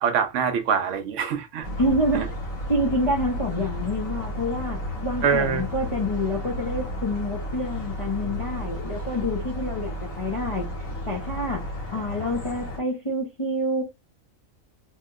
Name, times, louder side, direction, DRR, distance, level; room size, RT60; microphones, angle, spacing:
voice 1, 0.0-1.7 2.1-2.2 5.2-5.6, right 7 dB, 70° right, 0.9 m, -24 dB
sound 1, 1.6-12.8, equal, 90° left, 1.8 m, -33 dB
voice 2, 1.8-2.3 2.7-10.7 11.1-13.8, left 1 dB, 35° left, 0.6 m, -27 dB
2.8 x 2.8 x 2.3 m
omnidirectional pair, 1.4 m